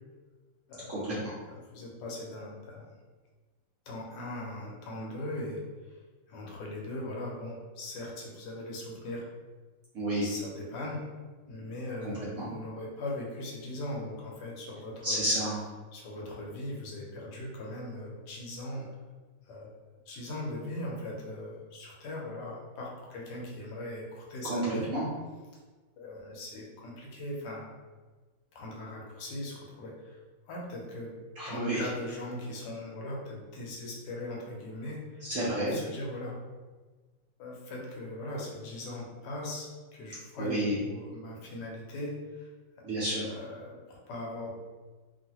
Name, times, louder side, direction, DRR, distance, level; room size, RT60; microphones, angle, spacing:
voice 1, 0.7-1.2 1.5-2.9 3.9-6.0 6.3-9.3 10.2-11.0 11.5-15.2 15.9-18.9 19.5-19.7 20.1-24.9 26.0-27.7 28.5-31.1 31.4-35.3 35.7-36.4 37.4-42.5 43.3-44.5, left 1 dB, 70° left, -2 dB, 1.2 m, -39 dB
voice 2, 15.0-15.6 24.4-25.1 31.4-31.8 35.3-35.7 40.4-40.7 42.8-43.2, right 1 dB, 65° right, -8 dB, 0.8 m, -30 dB
3.1 x 2.5 x 2.8 m, 1.3 s
omnidirectional pair, 2.0 m